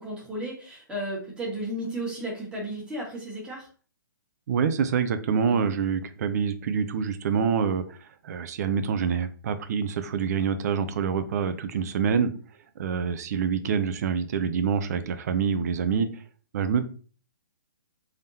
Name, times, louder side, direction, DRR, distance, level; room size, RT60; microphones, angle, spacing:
voice 1, 0.0-3.7 5.5-5.6 15.8-16.0, right 1 dB, 10° right, -5 dB, 1.6 m, -34 dB
voice 2, 4.5-12.3 12.8-16.2 16.5-16.9, right 6 dB, 50° right, 11 dB, 0.5 m, -26 dB
3.5 x 3.5 x 2.7 m, 0.39 s
hypercardioid pair, 150°, 11 cm